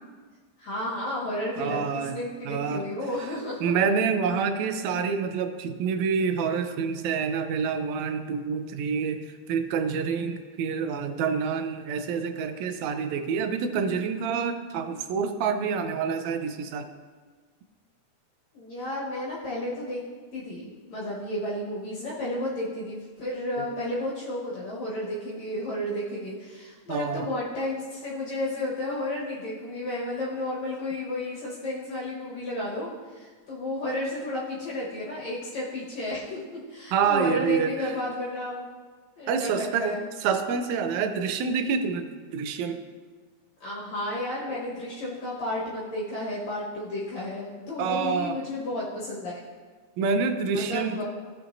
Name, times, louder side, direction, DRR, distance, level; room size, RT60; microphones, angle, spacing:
voice 1, 0.6-3.6 18.5-20.0 20.3-38.7 39.2-40.0 43.6-49.4 50.7-51.0, left 1 dB, 65° left, -6 dB, 2.6 m, -32 dB
voice 2, 1.6-2.2 2.5-2.8 3.6-16.9 23.6-23.7 26.9-27.3 36.9-37.9 39.3-42.8 47.8-48.4 50.0-51.0, right 6 dB, 75° right, 8 dB, 1.8 m, -27 dB
16.0 x 5.8 x 2.6 m, 1.5 s
omnidirectional pair, 3.5 m